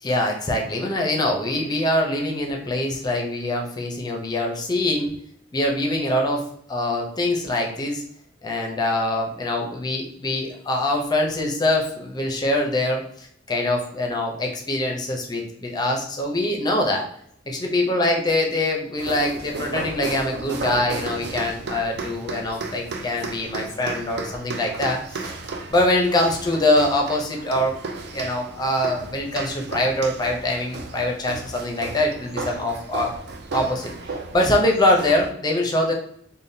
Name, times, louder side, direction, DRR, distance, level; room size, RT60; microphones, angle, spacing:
voice 1, 0.0-5.2 5.5-8.0 8.4-17.0 17.5-25.3 25.7-27.8 28.1-33.2 33.5-33.9 34.3-35.9, left 1 dB, 20° left, 0 dB, 0.5 m, -23 dB
sound 1, 19.0-35.3, right 3 dB, 60° right, 0.4 m, -34 dB
3.5 x 2.2 x 2.6 m, 0.67 s
head